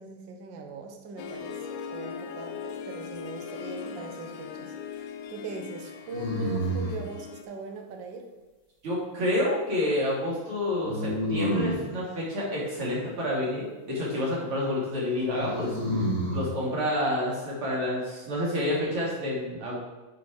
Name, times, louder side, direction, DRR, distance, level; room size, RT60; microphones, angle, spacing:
voice 1, 0.0-8.3, right 3 dB, 90° right, 3 dB, 1.0 m, -40 dB
Harp, 1.2-7.4, left 7 dB, 85° left, 2.3 m, -39 dB
sound 1, 3.4-4.1 6.1-7.1 10.8-11.9 15.2-16.5, equal, 50° left, 0.4 m, -29 dB
voice 2, 8.8-15.8 16.3-19.8, left 1 dB, 45° right, -6 dB, 3.5 m, -29 dB
9.7 x 5.4 x 4.4 m, 1.2 s
omnidirectional pair, 3.5 m